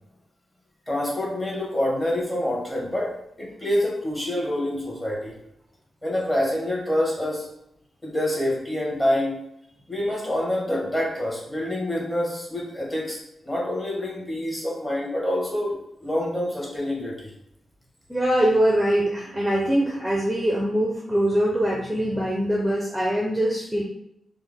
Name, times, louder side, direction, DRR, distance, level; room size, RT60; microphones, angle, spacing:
voice 1, 0.9-5.4 6.0-7.5 8.0-9.4 9.9-13.2 13.4-17.3, left 1 dB, 15° left, -4 dB, 1.3 m, -26 dB
voice 2, 18.1-23.8, right 1 dB, 10° right, -3 dB, 0.6 m, -23 dB
3.4 x 2.0 x 3.4 m, 0.79 s
cardioid pair, 95°, 0 cm